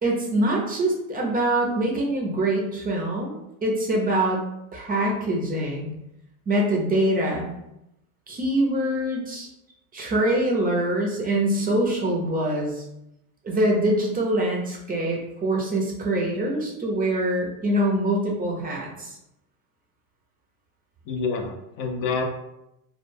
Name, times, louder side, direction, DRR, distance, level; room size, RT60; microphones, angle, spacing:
voice 1, 0.0-4.4 4.7-5.9 6.5-7.5 8.3-9.5 9.9-12.9 13.4-19.1, right 1 dB, 20° right, -1 dB, 0.5 m, -24 dB
voice 2, 21.1-22.2, left 4 dB, 50° left, 3 dB, 0.5 m, -27 dB
2.2 x 2.0 x 3.2 m, 0.85 s
supercardioid pair, 100°, 43 cm